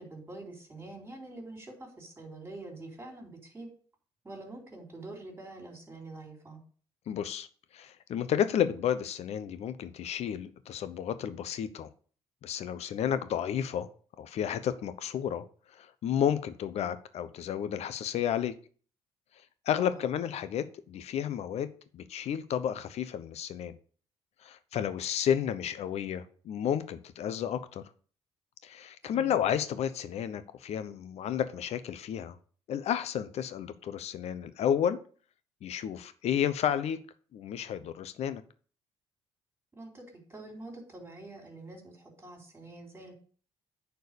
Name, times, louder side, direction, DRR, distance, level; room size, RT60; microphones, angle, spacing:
voice 1, 0.0-3.7 4.2-6.6 19.8-20.0 29.0-29.3 39.8-43.1, right 2 dB, 20° right, 2 dB, 4.2 m, -46 dB
voice 2, 7.1-7.5 7.7-11.9 12.4-13.9 14.2-15.4 15.7-18.5 19.7-21.7 21.9-23.7 24.4-27.8 28.6-32.4 32.7-35.0 35.6-37.0 37.3-38.4, left 9 dB, 70° left, 13 dB, 0.9 m, -31 dB
9.2 x 4.6 x 6.9 m, 0.43 s
supercardioid pair, 70°, 12 cm